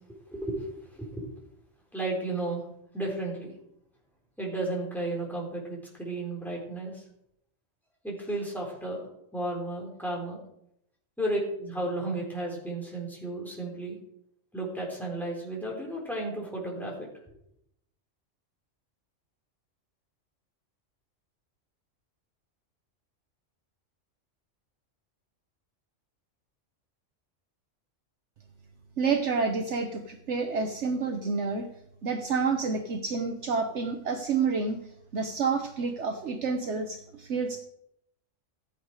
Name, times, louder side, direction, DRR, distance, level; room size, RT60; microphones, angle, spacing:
voice 1, 0.1-1.3 1.9-2.6 2.9-3.5 4.4-7.0 8.0-9.1 9.3-10.4 11.2-14.0 14.5-16.9, right 1 dB, ahead, -3 dB, 3.9 m, -33 dB
voice 2, 29.0-31.7 32.0-34.8 35.1-37.6, right 5 dB, 65° right, 5 dB, 1.3 m, -29 dB
15.0 x 8.2 x 4.8 m, 0.76 s
omnidirectional pair, 1.3 m